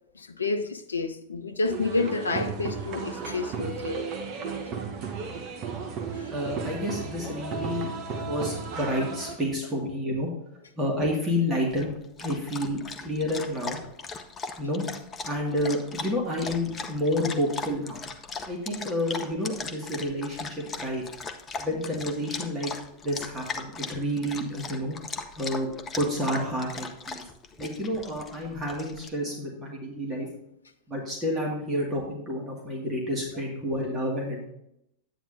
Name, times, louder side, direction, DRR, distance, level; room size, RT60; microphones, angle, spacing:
voice 1, 0.1-4.1 6.1-6.3, left 3 dB, 75° left, 0.6 m, -29 dB
sound 1, 1.6-9.4, right 5 dB, 40° right, 1.2 m, -34 dB
voice 2, 6.3-7.9 8.2-10.3 10.8-11.9 12.2-13.8 14.6-14.8 15.2-18.0 18.4-21.0 21.6-22.7 23.0-25.0 25.4-25.7 25.9-27.2 27.6-30.3 30.9-34.5, equal, 15° right, 2.2 m, -29 dB
Dog, 11.7-29.1, left 4 dB, 20° left, 0.8 m, -38 dB
9.3 x 9.2 x 2.7 m
figure-of-eight pair, 90°, 0 cm